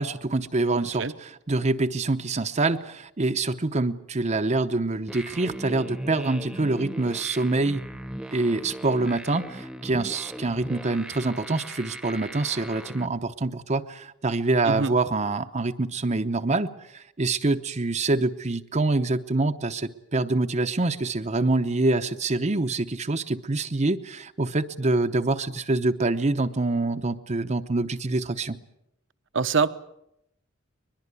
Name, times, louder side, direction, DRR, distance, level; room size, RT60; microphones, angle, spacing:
voice 1, 0.0-7.8 8.3-28.6, right 2 dB, 35° right, 0.8 m, -25 dB
sound 1, 5.1-13.1, equal, 5° right, 1.1 m, -39 dB
voice 2, 29.3-29.7, right 5 dB, 70° right, 1.0 m, -23 dB
22.0 x 22.0 x 8.3 m
head